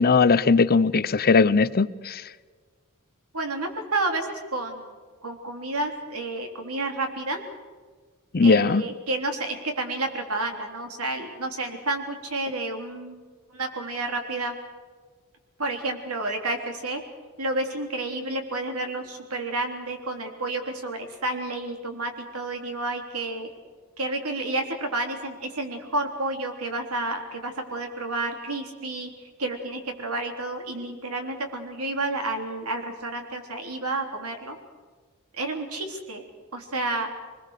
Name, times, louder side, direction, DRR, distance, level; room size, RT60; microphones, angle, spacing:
voice 1, 0.0-2.2 8.3-8.8, left 4 dB, 45° left, 0.7 m, -19 dB
voice 2, 3.3-4.9 5.2-7.4 8.4-13.2 13.5-14.6 15.6-17.0 17.4-23.5 24.0-34.6 35.3-36.2 36.5-37.1, right 2 dB, 85° right, 3.6 m, -30 dB
25.5 x 21.0 x 6.7 m
head